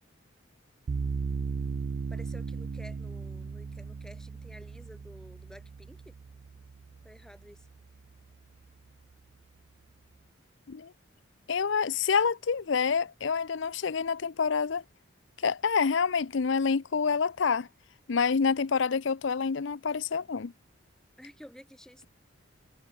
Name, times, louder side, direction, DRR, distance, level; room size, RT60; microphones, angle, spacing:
sound 1, 0.9-8.0, right 5 dB, 50° right, 0.4 m, -37 dB
voice 1, 2.1-6.1 7.0-7.7 21.2-22.1, equal, 5° left, 5.0 m, -51 dB
voice 2, 11.5-14.8 15.4-17.7 18.1-20.5, left 5 dB, 65° left, 0.5 m, -27 dB
head